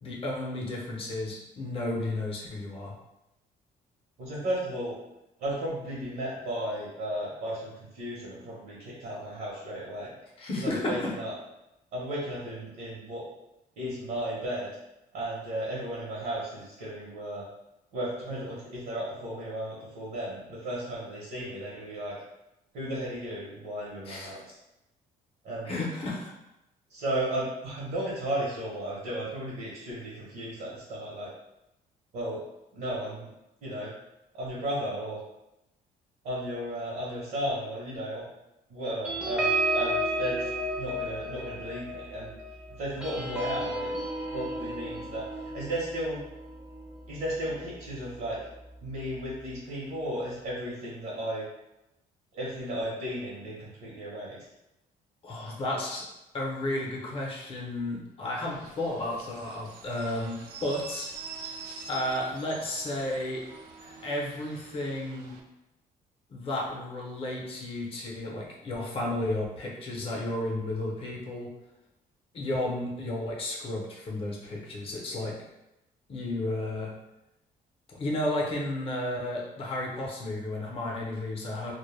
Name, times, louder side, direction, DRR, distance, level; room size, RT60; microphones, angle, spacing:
voice 1, 0.0-2.9 10.4-11.1 24.1-24.3 25.7-26.3 55.2-56.1 56.3-61.1 61.9-63.4 63.8-65.4 66.3-71.5 72.3-75.4 76.1-76.9 77.9-81.7, left 1 dB, 35° left, -2 dB, 0.6 m, -33 dB
voice 2, 4.2-5.0 5.4-10.1 10.6-11.3 11.9-13.2 13.8-14.7 15.1-17.4 17.9-22.1 22.7-24.6 25.4-25.8 26.9-31.3 32.1-32.4 32.7-33.3 33.6-33.9 34.3-35.2 36.2-38.2 38.7-40.5 40.8-42.3 42.8-43.9 44.3-46.2 47.1-48.4 48.8-51.4 52.3-54.4, right 1 dB, 65° right, -6 dB, 0.8 m, -34 dB
sound 1, 39.0-48.0 48.4-48.6 48.9-49.2, right 1 dB, 5° right, 0.5 m, -33 dB
sound 2, 58.5-65.4, right 4 dB, 85° right, 0.4 m, -45 dB
2.2 x 2.0 x 3.1 m, 0.91 s
cardioid pair, 130°, 16 cm